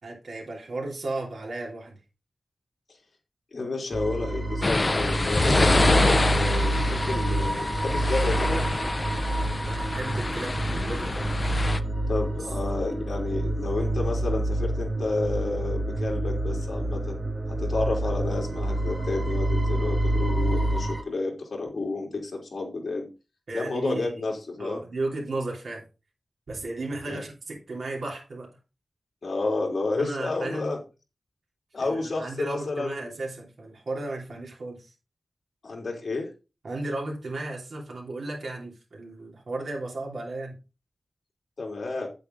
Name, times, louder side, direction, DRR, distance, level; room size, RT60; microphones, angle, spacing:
voice 1, 0.0-2.0 9.6-11.3 23.5-24.1 24.6-25.8 26.5-28.5 29.9-30.8 31.8-34.9 36.6-40.6, right 2 dB, 80° right, 3.2 m, -34 dB
voice 2, 3.5-8.6 12.1-17.2 17.5-23.1 23.5-24.8 27.1-27.2 29.2-30.8 31.7-33.1 35.6-36.3 41.6-42.1, left 3 dB, 55° left, 3.3 m, -30 dB
sound 1, 3.9-21.0, right 1 dB, 25° right, 2.0 m, -27 dB
sound 2, 4.6-11.8, left 2 dB, 35° left, 0.5 m, -26 dB
8.6 x 8.1 x 3.8 m
wide cardioid pair, 120°, 0 cm